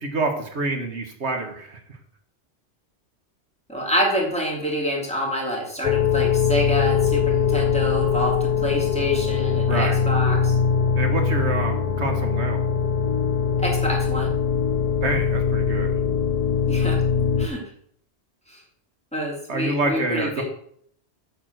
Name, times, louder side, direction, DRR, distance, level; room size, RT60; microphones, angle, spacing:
voice 1, 0.0-1.8 9.7-10.0 10.9-12.6 15.0-16.0 19.5-20.4, right 2 dB, 75° right, 5 dB, 1.7 m, -27 dB
voice 2, 3.7-8.3 8.6-10.5 13.6-14.3 16.7-17.0 17.4-17.6 18.5-18.6 19.1-20.4, equal, 5° left, -2 dB, 3.0 m, -27 dB
sound 1, 5.8-17.5, left 6 dB, 45° left, 0.6 m, -22 dB
8.3 x 7.2 x 6.5 m, 0.64 s
omnidirectional pair, 1.2 m